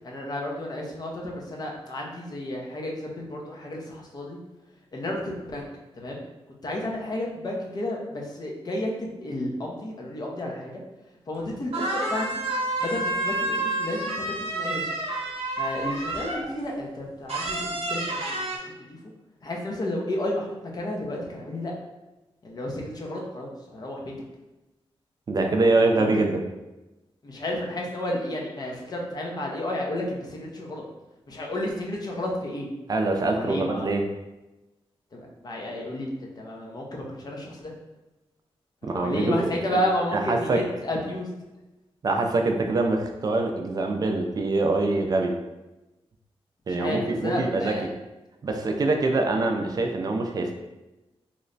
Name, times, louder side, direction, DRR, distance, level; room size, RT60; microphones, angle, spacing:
voice 1, 0.0-4.4 4.9-5.7 5.9-6.2 6.6-10.8 11.3-12.4 12.8-14.9 15.6-18.4 18.9-19.0 19.4-21.7 22.4-24.1 25.7-26.2 27.2-30.8 31.3-32.7 33.3-33.9 35.1-36.1 36.4-37.7 38.8-41.3 46.7-47.8, left 1 dB, 40° left, -1 dB, 0.6 m, -32 dB
sound 1, 11.4-11.5 11.7-16.6 17.3-18.6, right 2 dB, 75° right, 0.7 m, -29 dB
voice 2, 25.3-26.4 32.9-34.0 38.8-39.5 40.1-40.6 42.0-45.3 46.7-47.7 48.4-50.6, right 2 dB, 40° right, 3 dB, 0.3 m, -24 dB
3.0 x 2.1 x 3.8 m, 1.0 s
wide cardioid pair, 160°, 10 cm